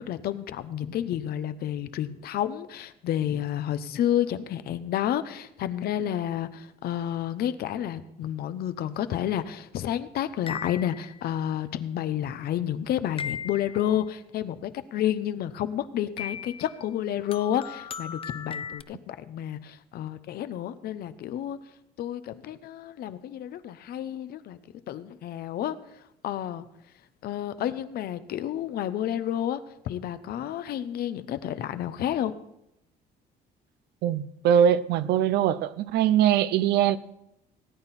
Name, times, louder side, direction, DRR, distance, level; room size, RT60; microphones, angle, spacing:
voice 1, 0.0-21.6 22.0-24.6 24.9-25.8 26.2-26.7 27.2-32.3, left 11 dB, 65° left, 0.8 m, -30 dB
sound 1, 10.5-11.3 13.2-13.9 16.2-16.8 17.3-18.8, left 7 dB, 35° left, 0.4 m, -37 dB
voice 2, 34.0-37.0, right 9 dB, 75° right, 0.6 m, -22 dB
18.0 x 8.9 x 4.3 m
cardioid pair, 110°, 17 cm